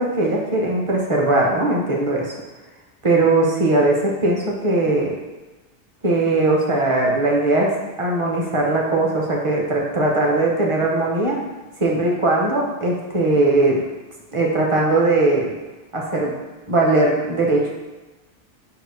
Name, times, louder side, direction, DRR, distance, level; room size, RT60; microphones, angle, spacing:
voice 1, 0.0-2.3 3.0-5.1 6.0-7.7 8.0-11.4 11.8-13.8 14.3-15.5 15.9-16.3 16.7-17.7, right 2 dB, 35° right, -2 dB, 0.8 m, -19 dB
4.8 x 2.3 x 4.6 m, 1.1 s
omnidirectional pair, 1.1 m